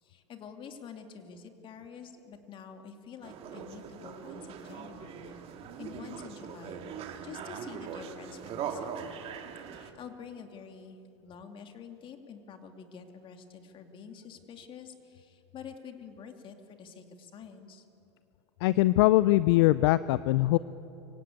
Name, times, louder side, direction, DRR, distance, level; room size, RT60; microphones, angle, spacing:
voice 1, 0.0-5.4 5.8-6.9 7.2-9.0 9.7-17.8, left 6 dB, 35° left, 5 dB, 2.4 m, -47 dB
sound 1, 3.2-9.9, right 7 dB, 40° right, 2.2 m, -41 dB
voice 2, 18.6-20.6, left 17 dB, 60° left, 16 dB, 0.5 m, -22 dB
24.5 x 17.0 x 8.6 m, 2.9 s
hypercardioid pair, 100°, 15 cm